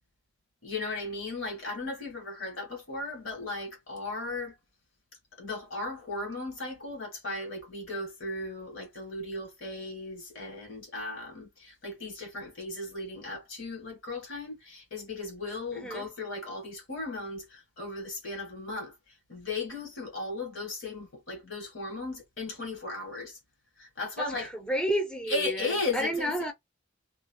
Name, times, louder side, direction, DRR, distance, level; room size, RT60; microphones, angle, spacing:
voice 1, 0.6-4.5 5.4-19.0 19.3-23.4 23.8-24.5 25.3-26.4, left 2 dB, 70° left, 1.5 m, -36 dB
voice 2, 15.7-16.1 24.2-26.5, right 1 dB, 5° left, 0.5 m, -31 dB
3.0 x 2.5 x 2.2 m
head